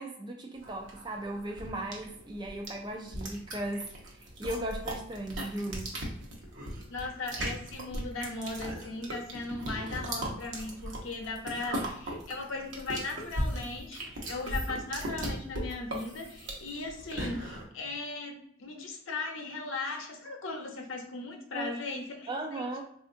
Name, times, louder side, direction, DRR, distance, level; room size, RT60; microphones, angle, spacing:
voice 1, 0.0-5.9 21.5-22.8, right 1 dB, 20° right, 0.3 m, -37 dB
sound 1, 0.6-17.6, right 1 dB, 80° right, 0.8 m, -37 dB
voice 2, 6.9-22.7, left 3 dB, 90° left, 0.6 m, -38 dB
3.5 x 2.4 x 2.5 m
head